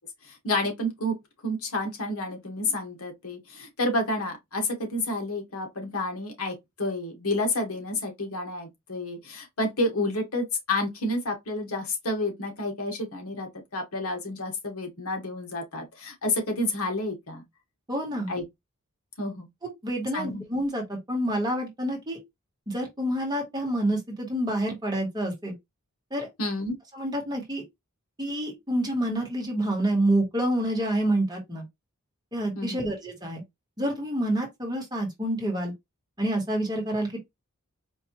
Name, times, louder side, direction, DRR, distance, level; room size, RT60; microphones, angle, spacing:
voice 1, 0.2-1.2 1.4-17.4 18.3-18.4 19.2-19.5 20.1-20.4 26.4-26.7 32.5-32.8, left 1 dB, 75° left, 1.3 m, -30 dB
voice 2, 17.9-18.3 19.8-22.2 22.7-25.5 26.1-26.3 26.9-27.6 28.2-31.6 32.3-33.4 33.8-35.7 36.2-37.2, right 1 dB, 20° right, 1.3 m, -28 dB
4.5 x 2.6 x 2.9 m
head